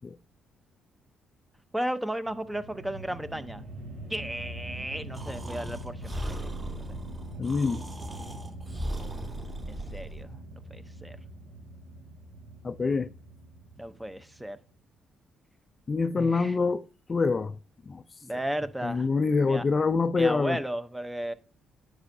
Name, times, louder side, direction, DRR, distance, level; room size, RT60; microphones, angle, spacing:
voice 1, 1.7-3.6 4.1-6.2 9.7-10.4 10.7-11.2 13.8-14.6 16.2-16.6 18.2-19.1 19.4-19.6 20.2-21.3, right 1 dB, 5° right, 0.7 m, -34 dB
sound 1, 2.2-14.5, right 1 dB, 75° right, 4.3 m, -43 dB
Breathing, 5.1-10.2, right 1 dB, 25° right, 2.9 m, -37 dB
voice 2, 7.4-7.8 12.6-13.1 15.9-16.8 17.1-17.5 17.9-18.0 18.8-20.6, left 4 dB, 35° left, 0.4 m, -25 dB
9.6 x 6.0 x 2.7 m
cardioid pair, 90°, 0 cm